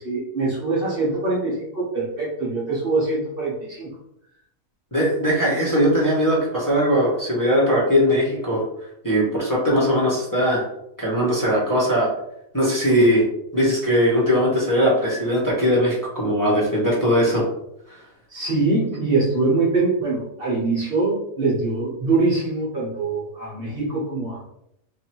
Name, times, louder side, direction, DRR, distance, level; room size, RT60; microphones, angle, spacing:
voice 1, 0.0-3.9 18.3-24.4, right 3 dB, 45° right, -5 dB, 1.0 m, -23 dB
voice 2, 4.9-8.6 9.0-10.7 11.0-12.1 12.5-13.3 13.5-17.4 17.9-18.0, equal, 15° left, -6 dB, 1.1 m, -20 dB
3.1 x 2.6 x 4.4 m, 0.77 s
omnidirectional pair, 1.5 m